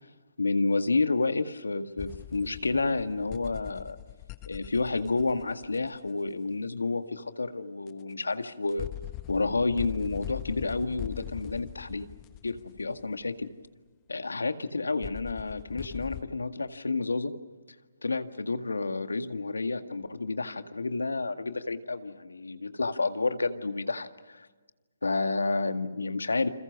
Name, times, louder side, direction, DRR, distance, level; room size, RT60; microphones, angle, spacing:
voice 1, 0.4-4.0 4.5-8.9 9.3-12.1 12.4-13.5 14.1-17.3 18.0-24.5 25.0-26.5, left 3 dB, 80° left, 9 dB, 1.9 m, -30 dB
sound 1, 2.0-6.1 7.9-8.0 8.7-13.2 15.0-16.2, left 19 dB, 25° left, 1.3 m, -42 dB
29.0 x 27.5 x 6.1 m, 1.3 s
figure-of-eight pair, 135°, 0 cm